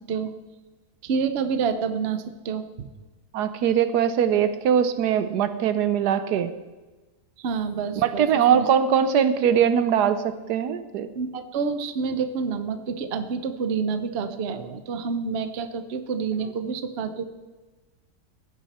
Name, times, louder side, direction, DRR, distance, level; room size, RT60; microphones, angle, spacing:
voice 1, 1.0-2.9 7.4-8.2 8.5-8.6 11.1-17.2, right 5 dB, 50° right, 9 dB, 0.9 m, -28 dB
voice 2, 3.3-6.5 7.9-11.1, right 8 dB, 80° right, 12 dB, 1.3 m, -21 dB
16.0 x 9.4 x 4.2 m, 1.2 s
omnidirectional pair, 1.7 m